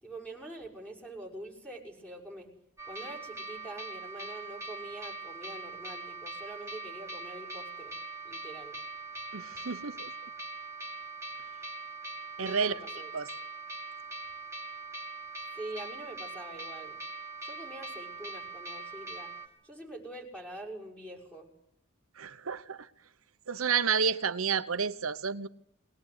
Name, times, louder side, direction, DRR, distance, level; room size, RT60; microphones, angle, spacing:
voice 1, 0.0-2.5 2.9-7.9 8.2-8.8 12.4-13.1 15.5-17.0 17.4-19.3 19.6-21.5, right 1 dB, 5° left, 6.4 m, -45 dB
sound 1, 2.8-19.5, right 3 dB, 15° right, 3.6 m, -42 dB
voice 2, 9.3-10.1 12.4-12.7 13.1-13.3 22.2-22.8 23.5-25.5, right 6 dB, 75° right, 1.0 m, -30 dB
22.5 x 19.5 x 9.8 m
head